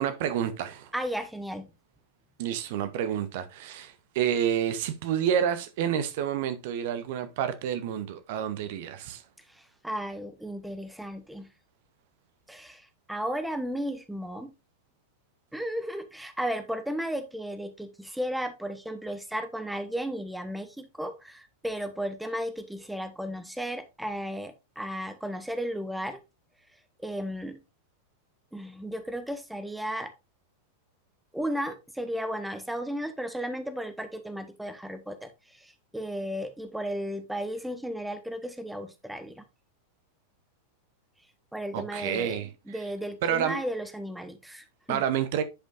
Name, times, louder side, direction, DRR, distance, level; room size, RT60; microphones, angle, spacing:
voice 1, 0.0-0.9 2.4-9.2 41.7-42.5 43.2-43.6 44.9-45.4, right 9 dB, 50° right, 0.8 m, -29 dB
voice 2, 0.9-1.7 9.5-11.5 12.5-14.5 15.5-26.2 27.0-27.6 28.5-30.1 31.3-39.4 41.5-42.4 42.7-45.0, equal, 5° right, 1.0 m, -34 dB
10.0 x 5.3 x 2.5 m
figure-of-eight pair, 90°, 0 cm